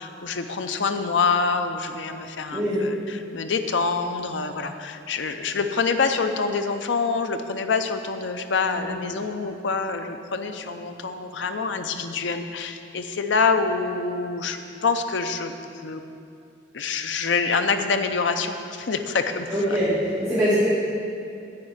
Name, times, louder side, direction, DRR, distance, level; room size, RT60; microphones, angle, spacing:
voice 1, 0.0-15.5 15.8-16.0 16.7-19.5, left 4 dB, 85° left, 7 dB, 0.6 m, -26 dB
voice 2, 2.5-2.8 8.7-8.8 19.5-20.0 20.2-20.6, equal, 10° right, -16 dB, 2.4 m, -22 dB
9.6 x 4.8 x 7.8 m, 2.5 s
head